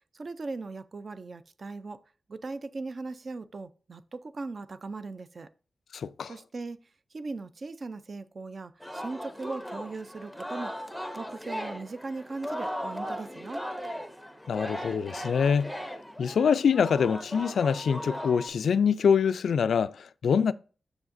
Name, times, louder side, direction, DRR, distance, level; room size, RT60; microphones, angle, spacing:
voice 1, 0.1-2.0 2.3-5.5 6.3-6.8 7.1-10.8 11.2-13.6, right 3 dB, 40° right, 0.4 m, -38 dB
voice 2, 5.9-6.3 14.5-15.7 16.2-20.5, left 6 dB, 80° left, 0.3 m, -25 dB
Singing, 8.8-18.5, equal, ahead, 0.6 m, -38 dB
7.1 x 6.3 x 2.6 m
wide cardioid pair, 145°, 0 cm